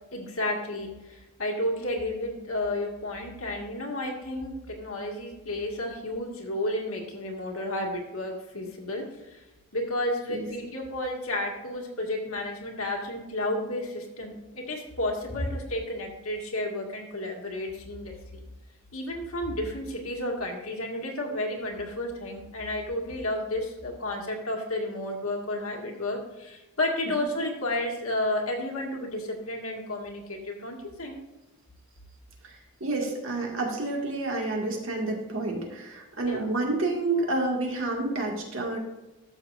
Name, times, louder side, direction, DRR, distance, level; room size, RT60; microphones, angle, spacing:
voice 1, 0.1-9.4 9.7-18.4 18.9-31.2 36.2-36.5, left 1 dB, 75° left, 0 dB, 2.0 m, -32 dB
voice 2, 32.8-38.8, right 2 dB, 60° right, 0 dB, 2.0 m, -29 dB
12.5 x 7.1 x 2.6 m, 1.0 s
head